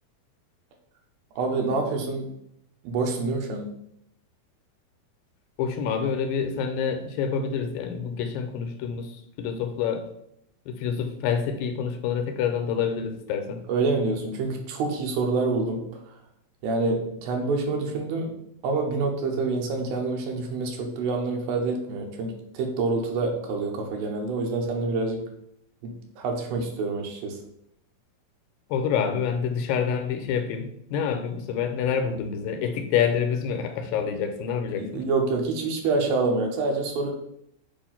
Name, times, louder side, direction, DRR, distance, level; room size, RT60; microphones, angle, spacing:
voice 1, 1.4-2.3 2.8-3.7 13.7-16.0 16.6-18.3 18.6-25.3 25.8-27.4 34.7-37.1, right 3 dB, 85° right, 2 dB, 2.8 m, -27 dB
voice 2, 5.6-10.0 10.7-13.6 28.7-35.0, left 7 dB, 80° left, 6 dB, 2.2 m, -27 dB
6.9 x 2.6 x 5.6 m, 0.74 s
omnidirectional pair, 4.1 m